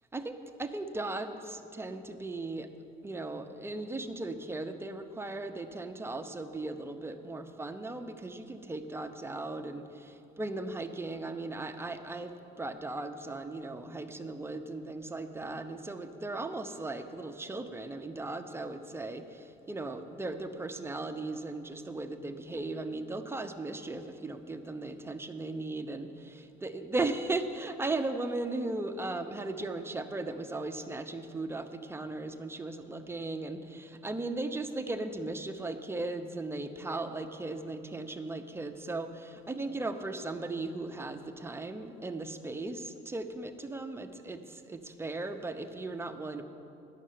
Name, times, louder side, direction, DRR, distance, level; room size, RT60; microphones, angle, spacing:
voice 1, 0.1-2.7 3.0-46.4, right 2 dB, 15° right, 7 dB, 0.7 m, -37 dB
11.0 x 6.6 x 9.3 m, 2.7 s
cardioid pair, 110°, 17 cm